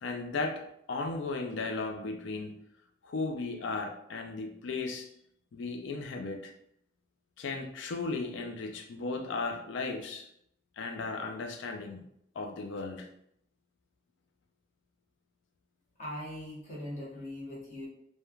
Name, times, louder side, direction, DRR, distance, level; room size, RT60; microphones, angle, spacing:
voice 1, 0.0-2.6 3.0-5.1 5.5-6.5 7.4-10.3 10.8-12.0 12.4-13.1, left 3 dB, 75° left, 5 dB, 0.4 m, -36 dB
voice 2, 16.0-17.9, left 1 dB, 40° left, -6 dB, 0.9 m, -40 dB
3.1 x 2.1 x 2.3 m, 0.73 s
head